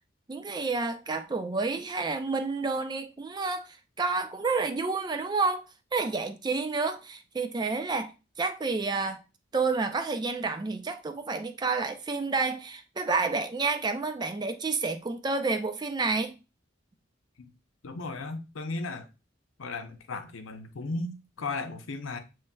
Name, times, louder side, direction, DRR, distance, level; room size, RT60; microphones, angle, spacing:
voice 1, 0.3-3.7 4.0-5.6 5.9-8.1 8.4-9.2 9.5-16.3, right 4 dB, 20° right, 0.4 m, -29 dB
voice 2, 17.8-19.1 19.6-22.2, left 3 dB, 85° left, 0.7 m, -35 dB
7.2 x 3.1 x 2.2 m
head